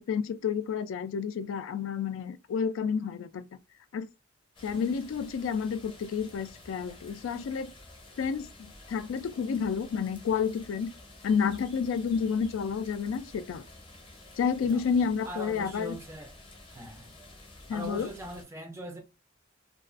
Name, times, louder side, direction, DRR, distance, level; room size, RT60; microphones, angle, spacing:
voice 1, 0.0-3.5 3.9-4.1 4.6-7.7 8.2-10.9 11.2-13.6 14.4-15.9 17.7-18.1, left 6 dB, 80° left, 0.3 m, -30 dB
sound 1, 4.5-18.4, left 2 dB, 25° left, 0.6 m, -51 dB
voice 2, 15.2-16.3 16.7-17.2 17.7-19.0, right 1 dB, 15° right, 0.4 m, -41 dB
2.4 x 2.3 x 2.4 m
head